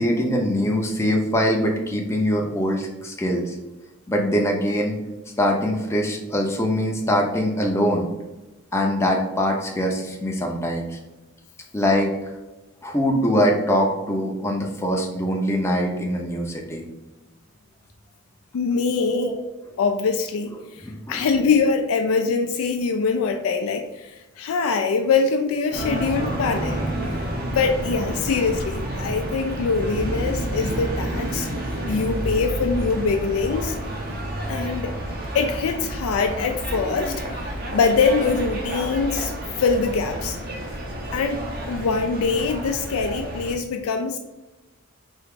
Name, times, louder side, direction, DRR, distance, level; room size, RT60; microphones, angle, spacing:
voice 1, 0.0-3.5 4.1-4.9 5.4-8.1 8.7-11.0 11.7-12.1 12.8-16.8 19.1-19.3 20.8-21.3, equal, 10° left, 0 dB, 0.6 m, -23 dB
voice 2, 18.5-19.3 19.8-26.8 27.5-31.5 31.9-33.8 34.5-34.9 35.3-39.3 39.6-40.4 41.1-44.2, left 5 dB, 80° left, 5 dB, 0.4 m, -23 dB
sound 1, 25.7-43.5, right 1 dB, 45° right, 0.8 m, -29 dB
4.5 x 2.9 x 3.6 m, 1.1 s
head